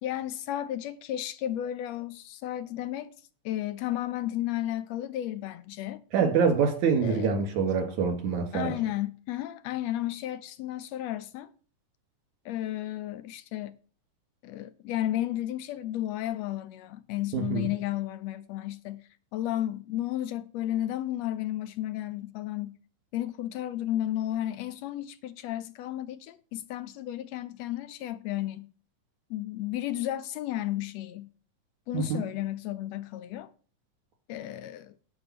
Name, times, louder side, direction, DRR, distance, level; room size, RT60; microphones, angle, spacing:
voice 1, 0.0-3.1 3.4-6.0 7.0-7.4 8.5-11.5 12.4-13.7 14.4-22.8 23.1-28.7 29.3-31.3 31.9-33.5 34.3-34.9, left 13 dB, 75° left, 1.6 m, -33 dB
voice 2, 6.1-8.8 17.3-17.7 31.9-32.2, right 6 dB, 75° right, 3.5 m, -25 dB
8.7 x 8.6 x 5.9 m
omnidirectional pair, 3.4 m